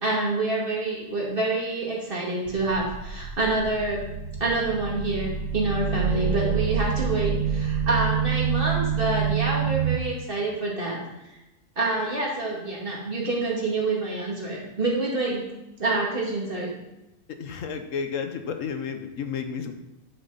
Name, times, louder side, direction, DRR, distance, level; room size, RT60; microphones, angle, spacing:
voice 1, 0.0-4.0 4.4-11.0 11.8-15.4 15.8-16.7, right 2 dB, 40° right, -3 dB, 2.5 m, -27 dB
sound 1, 2.5-10.0, right 7 dB, 80° right, 1.1 m, -27 dB
voice 2, 17.4-19.7, left 6 dB, 75° left, 7 dB, 1.2 m, -31 dB
10.0 x 6.6 x 4.1 m, 0.95 s
omnidirectional pair, 1.4 m